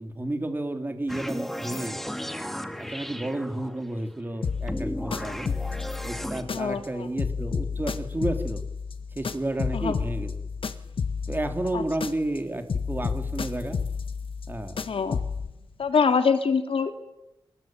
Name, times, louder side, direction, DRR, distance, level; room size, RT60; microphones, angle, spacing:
voice 1, 0.0-2.0 2.8-5.5 6.0-8.6 9.1-10.3 11.3-13.8 14.5-15.0, right 1 dB, 20° right, 6 dB, 3.4 m, -31 dB
sound 1, 1.1-3.9 4.7-6.4, equal, 5° left, 2.0 m, -35 dB
sound 2, 4.4-6.9 7.2-12.4 12.7-15.5, left 5 dB, 75° left, 1.8 m, -31 dB
voice 2, 6.5-7.1 9.7-10.0 11.7-11.8 14.9-15.2 15.8-16.9, left 5 dB, 90° left, 8 dB, 2.6 m, -24 dB
27.5 x 20.0 x 9.2 m, 0.89 s
wide cardioid pair, 140°, 9 cm